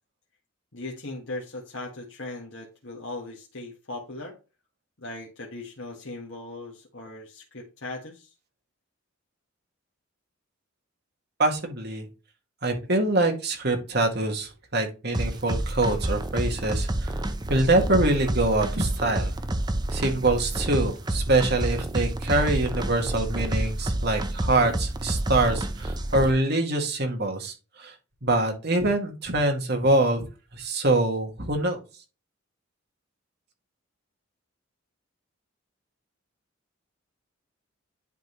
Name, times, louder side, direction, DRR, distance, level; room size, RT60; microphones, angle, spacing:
voice 1, 0.7-4.4 5.0-8.3, left 2 dB, 60° left, 1.6 m, -38 dB
voice 2, 11.4-12.1 12.6-17.2 17.5-19.3 19.9-27.9 28.2-30.2 30.5-31.8, right 2 dB, 50° right, 2.0 m, -24 dB
sound 1, 15.1-26.3, right 1 dB, 20° right, 0.6 m, -29 dB
10.5 x 3.8 x 3.1 m
head